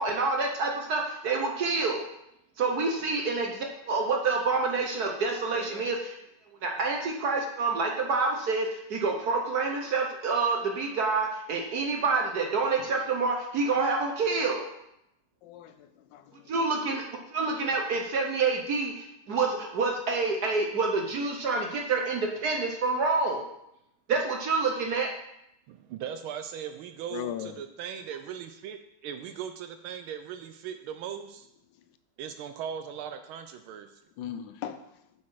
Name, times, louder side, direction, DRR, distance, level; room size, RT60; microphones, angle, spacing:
voice 1, 0.0-2.1 2.6-6.1 6.6-14.7 16.5-17.0 17.3-23.5 24.1-25.1, right 4 dB, 55° right, 2 dB, 1.2 m, -27 dB
voice 2, 15.4-16.2 27.1-27.5 34.2-34.8, left 10 dB, 70° left, 10 dB, 1.2 m, -37 dB
voice 3, 25.7-31.5 32.2-33.9, right 8 dB, 80° right, 8 dB, 1.4 m, -39 dB
7.3 x 6.3 x 4.7 m, 0.80 s
omnidirectional pair, 2.3 m